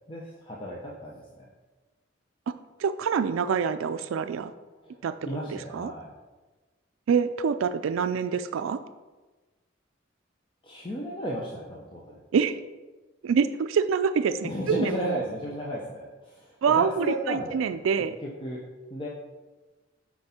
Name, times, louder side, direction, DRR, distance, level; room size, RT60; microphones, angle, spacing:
voice 1, 0.1-1.5 4.8-6.1 10.6-12.2 14.4-17.7 18.4-18.6 18.9-19.1, equal, 25° left, -3 dB, 0.7 m, -34 dB
voice 2, 2.8-4.5 5.0-5.1 5.7-5.9 7.1-8.8 12.3-12.6 13.2-15.2 16.6-18.2, right 6 dB, 85° right, 11 dB, 0.3 m, -26 dB
7.7 x 4.6 x 4.3 m, 1.2 s
head